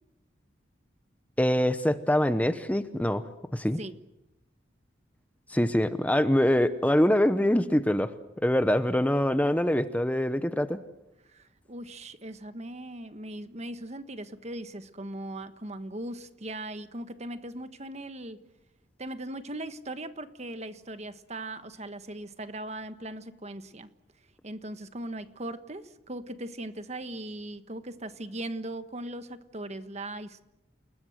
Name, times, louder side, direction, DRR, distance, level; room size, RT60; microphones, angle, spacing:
voice 1, 1.4-3.2 3.5-3.8 5.5-8.1 8.4-10.8, left 1 dB, 10° left, 11 dB, 0.8 m, -24 dB
voice 2, 11.3-18.4 19.0-23.9 24.4-30.4, right 1 dB, 35° right, 10 dB, 1.4 m, -39 dB
29.0 x 20.5 x 7.9 m, 0.93 s
head